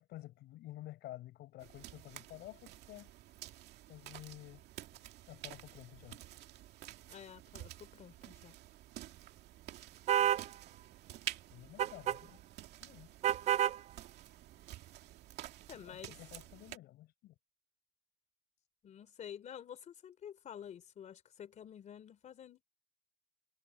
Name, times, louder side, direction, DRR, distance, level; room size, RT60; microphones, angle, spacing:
voice 1, 0.0-3.1 3.4-3.5 3.9-4.6 5.3-6.2 11.5-12.4 12.8-13.1 15.7-17.3, left 15 dB, 70° left, 4.5 m, -51 dB
sound 1, 1.6-16.8, right 14 dB, 70° right, 2.3 m, -50 dB
voice 2, 7.1-8.6 15.7-16.2 18.8-22.6, left 9 dB, 40° left, 3.7 m, -50 dB
sound 2, 10.1-10.5 11.8-12.2 13.2-13.8, right 11 dB, 40° right, 0.4 m, -29 dB
cardioid pair, 140°, 18 cm